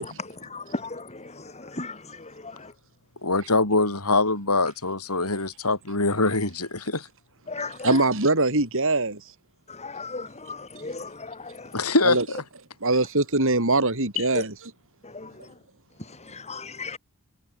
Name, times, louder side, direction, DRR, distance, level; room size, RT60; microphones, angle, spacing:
voice 1, 0.0-2.7 7.5-8.0 9.7-11.9 14.3-14.4 15.0-15.5 16.0-17.0, left 3 dB, 30° left, 3.8 m, -36 dB
voice 2, 3.2-7.1 11.7-12.4, left 3 dB, 80° left, 6.9 m, -23 dB
voice 3, 7.8-9.2 12.0-12.2 12.8-14.5, right 2 dB, 60° right, 5.7 m, -22 dB
head